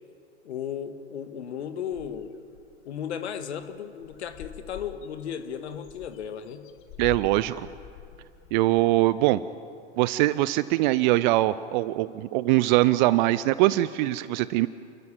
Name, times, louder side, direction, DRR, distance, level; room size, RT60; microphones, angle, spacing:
voice 1, 0.4-2.3 2.9-6.7, left 8 dB, 65° left, 10 dB, 1.8 m, -35 dB
sound 1, 1.9-2.7 3.1-3.2 3.4-3.7 4.0-9.0, left 9 dB, 35° left, 1.6 m, -45 dB
voice 2, 7.0-7.7 8.5-9.4 10.0-14.7, right 17 dB, 40° right, 16 dB, 0.6 m, -22 dB
29.5 x 14.0 x 8.9 m, 2.4 s
figure-of-eight pair, 100°, 36 cm